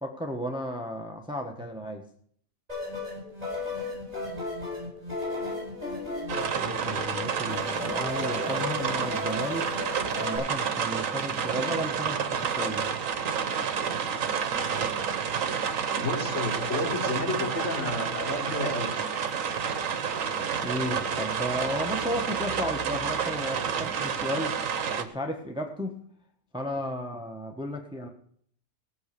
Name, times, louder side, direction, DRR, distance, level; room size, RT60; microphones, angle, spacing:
voice 1, 0.0-2.0 6.5-9.7 10.2-12.9 20.6-24.6 25.0-26.0 26.5-28.1, equal, 5° right, 4 dB, 1.0 m, -34 dB
sound 1, 2.7-10.4, left 2 dB, 25° right, 8.2 m, -35 dB
sound 2, 6.3-25.0, right 7 dB, 65° right, 1.4 m, -30 dB
voice 2, 16.0-18.9, left 2 dB, 50° left, -2 dB, 3.6 m, -31 dB
17.5 x 7.1 x 6.8 m, 0.63 s
omnidirectional pair, 1.5 m